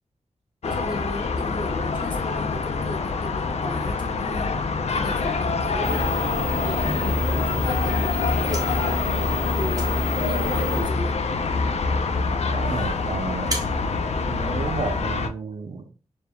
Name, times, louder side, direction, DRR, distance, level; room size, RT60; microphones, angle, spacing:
sound 1, 0.6-15.3, left 4 dB, 70° left, 0.5 m, -25 dB
voice 1, 0.6-4.5 4.9-8.8 9.5-11.2, left 1 dB, 40° left, 1.3 m, -36 dB
sound 2, 5.8-10.8, left 2 dB, ahead, 0.9 m, -31 dB
sound 3, 8.2-15.0, right 1 dB, 30° right, 1.0 m, -40 dB
voice 2, 12.5-15.8, right 4 dB, 70° right, 0.6 m, -32 dB
6.8 x 2.6 x 2.2 m
wide cardioid pair, 105°, 11 cm